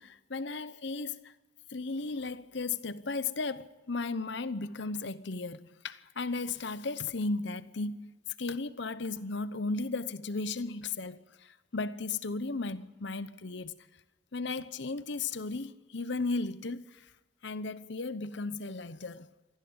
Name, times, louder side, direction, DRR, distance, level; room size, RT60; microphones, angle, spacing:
voice 1, 0.0-1.3 1.7-13.7 14.3-17.0 17.4-19.3, left 3 dB, 60° left, 0.9 m, -35 dB
24.5 x 15.0 x 8.8 m
head